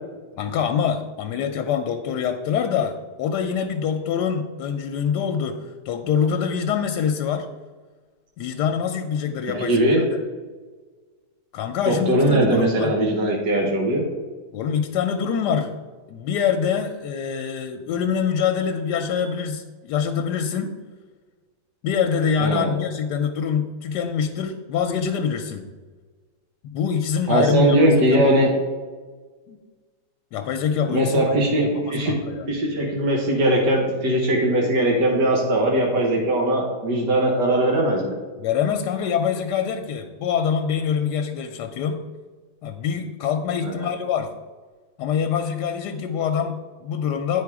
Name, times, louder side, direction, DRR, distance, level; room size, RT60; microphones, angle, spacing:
voice 1, 0.3-7.5 8.4-10.2 11.5-13.0 14.5-15.7 16.1-20.8 21.8-25.7 26.6-28.3 29.5-29.6 30.3-32.6 38.4-42.0 42.6-44.3 45.0-47.4, left 7 dB, 85° left, 6 dB, 1.2 m, -25 dB
voice 2, 9.5-10.0 11.8-14.0 22.4-22.8 27.3-28.6 30.9-32.1 32.5-38.1 43.6-43.9, right 1 dB, 80° right, -1 dB, 1.8 m, -20 dB
9.2 x 4.9 x 4.7 m, 1.4 s
omnidirectional pair, 1.8 m